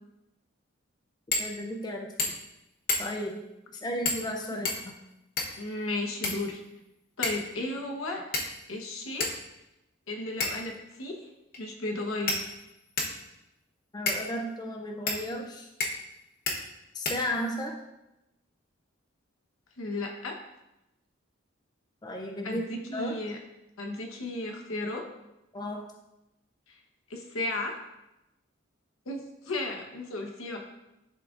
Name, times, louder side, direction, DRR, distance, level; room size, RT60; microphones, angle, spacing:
sound 1, 1.3-1.5 1.8-1.9 2.2-2.5 2.9-3.3 4.0-4.3 4.6-5.7 6.2-6.8 7.2-7.5 8.3-8.7 9.2-9.3 10.4-10.7 11.5-11.6 12.3-13.2 14.1-14.2 15.1-15.2 15.8-16.1 16.5-16.6 17.0-17.6, left 3 dB, 45° left, 0.9 m, -31 dB
voice 1, 1.4-2.1 3.0-3.5 3.8-5.0 13.9-15.7 16.9-17.8 22.0-23.2 25.5-25.9, equal, 20° left, 1 dB, 0.4 m, -34 dB
voice 2, 5.6-6.6 7.2-8.2 8.7-9.3 10.1-11.3 11.6-12.5 19.8-20.4 22.4-23.4 23.8-25.1 26.7-26.8 27.1-27.7 29.1-30.6, left 2 dB, 85° left, 2 dB, 1.0 m, -34 dB
11.0 x 3.7 x 2.5 m, 0.94 s
head